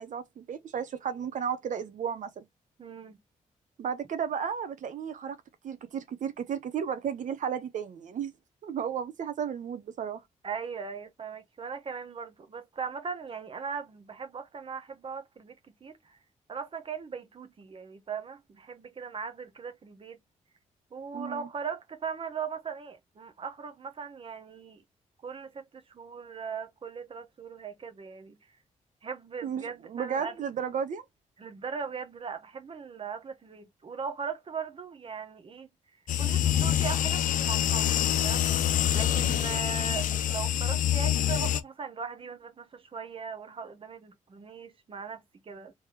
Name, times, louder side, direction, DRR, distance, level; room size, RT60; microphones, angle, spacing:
voice 1, 0.0-2.5 3.8-5.4 5.6-8.3 8.6-10.2 21.1-21.5 29.4-31.0 39.1-39.5, right 7 dB, 70° right, 0.9 m, -34 dB
voice 2, 2.8-3.2 10.4-16.2 16.5-20.2 20.9-24.8 25.2-28.4 29.0-30.4 31.4-35.7 36.1-38.5 38.9-45.7, right 6 dB, 40° right, 1.0 m, -39 dB
sound 1, 36.1-41.6, left 11 dB, 75° left, 0.5 m, -26 dB
3.5 x 3.1 x 3.2 m
cardioid pair, 85°, 14 cm